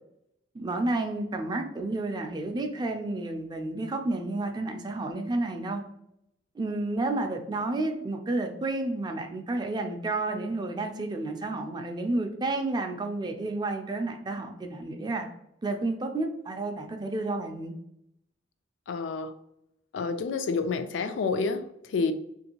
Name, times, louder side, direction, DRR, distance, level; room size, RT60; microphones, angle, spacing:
voice 1, 0.5-5.8 6.6-15.3 15.6-17.7, right 2 dB, 25° right, 5 dB, 0.3 m, -31 dB
voice 2, 18.9-19.4 19.9-22.1, left 4 dB, 70° left, 10 dB, 0.3 m, -29 dB
3.0 x 2.6 x 2.8 m, 0.77 s
head